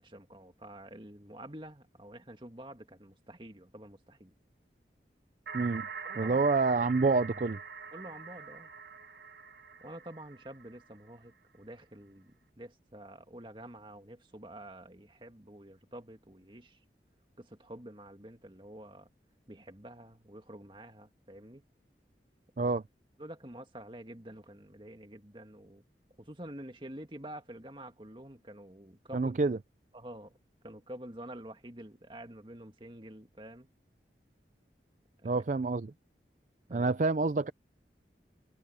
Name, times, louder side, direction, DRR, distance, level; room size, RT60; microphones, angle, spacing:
voice 1, 0.0-4.3 6.0-6.4 7.9-8.7 9.8-16.8 17.4-19.1 19.5-21.6 22.6-22.7 23.2-25.8 26.2-29.3 29.9-30.4 30.6-33.7 35.2-35.4 36.7-36.9, right 1 dB, 30° right, 2.1 m, -48 dB
voice 2, 5.5-5.9 6.2-7.6 22.6-22.8 29.1-29.6 35.2-35.9 36.7-37.5, right 3 dB, 45° right, 0.4 m, -27 dB
sound 1, 5.5-11.2, right 6 dB, 65° right, 1.5 m, -44 dB
head